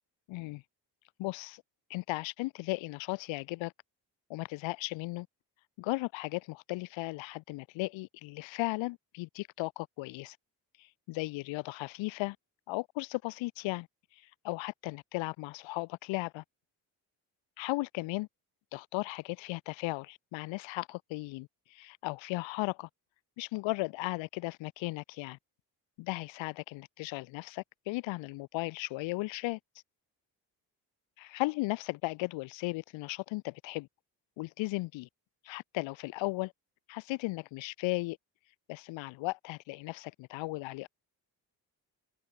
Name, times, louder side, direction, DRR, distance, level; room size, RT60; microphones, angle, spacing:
voice 1, 0.3-0.6 1.2-1.6 1.9-3.7 4.3-5.3 5.8-10.4 10.8-12.4 12.7-13.9 14.1-16.4 17.6-18.3 18.7-22.9 23.4-25.4 26.0-29.6 31.2-33.9 34.4-35.1 35.4-36.5 36.9-38.2 38.7-40.9, left 21 dB, 90° left, 2.7 m, -36 dB
supercardioid pair, 55°, 44 cm